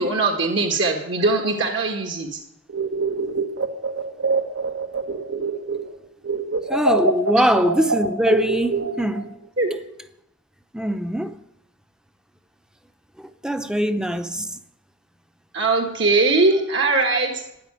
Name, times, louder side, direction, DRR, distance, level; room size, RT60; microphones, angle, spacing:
voice 1, 0.0-2.4 9.6-9.7 15.5-17.4, right 3 dB, 65° right, 1.6 m, -21 dB
sound 1, 2.7-6.0 6.2-9.3, right 3 dB, 80° right, 1.5 m, -25 dB
voice 2, 6.7-9.3 10.7-11.4 13.4-14.6, equal, 5° right, 0.6 m, -22 dB
12.5 x 9.8 x 9.4 m
head